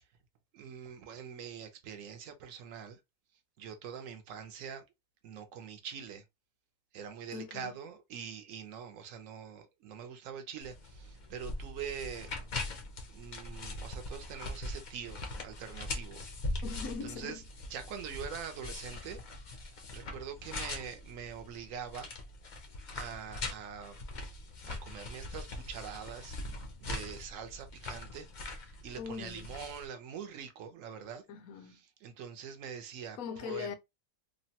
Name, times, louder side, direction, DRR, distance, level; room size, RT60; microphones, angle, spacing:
voice 1, 0.5-3.0 3.6-4.8 5.2-6.2 6.9-12.3 13.1-16.6 17.0-17.4 17.7-19.2 19.5-22.1 22.9-24.0 24.6-26.4 26.8-31.2 31.6-33.7, right 7 dB, 65° right, 1.0 m, -44 dB
voice 2, 7.3-7.8 16.6-17.4 29.0-29.5 31.3-31.8 33.2-33.7, left 6 dB, 75° left, 1.0 m, -41 dB
sound 1, 10.6-29.9, left 2 dB, 50° left, 0.5 m, -42 dB
3.1 x 2.1 x 2.7 m
omnidirectional pair, 1.5 m